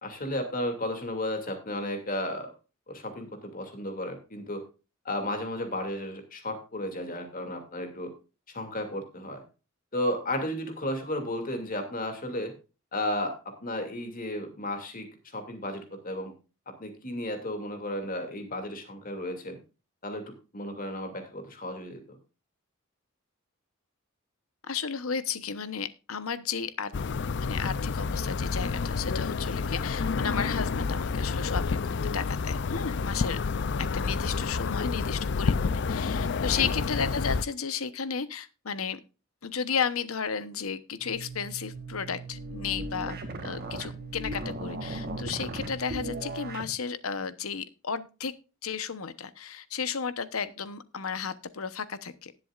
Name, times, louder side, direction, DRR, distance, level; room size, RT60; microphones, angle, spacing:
voice 1, 0.0-2.5 2.9-4.6 5.0-8.1 8.5-9.4 9.9-12.5 12.9-16.3 16.7-19.6 20.0-22.2 36.5-36.7, left 1 dB, 40° left, 5 dB, 2.6 m, -34 dB
voice 2, 24.7-26.9 27.4-33.4 33.8-39.0 39.4-48.3 48.6-52.3, left 6 dB, 90° left, 13 dB, 1.0 m, -33 dB
sound 1, 26.9-37.4, left 4 dB, 55° left, 0.5 m, -29 dB
sound 2, 41.0-46.7, right 2 dB, 50° right, 2.1 m, -37 dB
18.5 x 7.7 x 2.5 m, 0.31 s
head